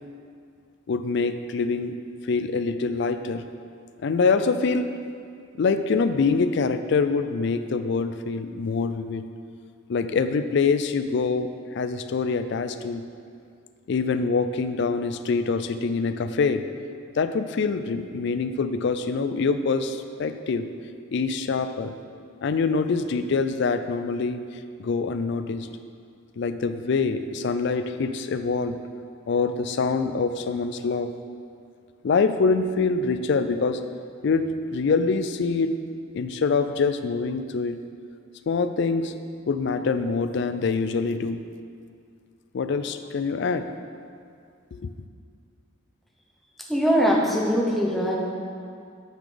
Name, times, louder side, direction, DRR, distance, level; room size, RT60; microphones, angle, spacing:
voice 1, 0.9-1.9 2.2-3.4 4.0-4.9 5.6-9.2 9.9-11.5 11.7-13.0 13.9-16.6 17.2-20.7 21.1-21.9 22.4-24.4 24.8-25.7 26.4-28.8 29.3-31.1 32.0-33.8 34.2-35.7 36.1-37.8 38.5-39.1 39.5-41.4 42.5-43.7 44.8-44.9, left 4 dB, 55° left, 10 dB, 0.3 m, -25 dB
voice 2, 46.7-48.2, equal, ahead, -3 dB, 0.8 m, -21 dB
9.1 x 3.9 x 5.0 m, 2.3 s
head